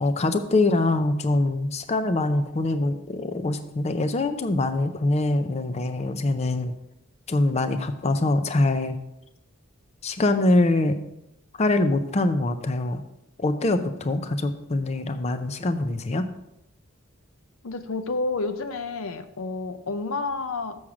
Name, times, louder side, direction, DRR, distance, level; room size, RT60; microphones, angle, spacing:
voice 1, 0.0-6.7 7.3-9.0 10.0-11.0 11.6-13.0 13.4-16.3, left 2 dB, 30° left, 9 dB, 0.5 m, -24 dB
voice 2, 17.6-20.8, left 3 dB, 90° left, 10 dB, 0.6 m, -30 dB
7.2 x 6.2 x 4.9 m, 0.85 s
head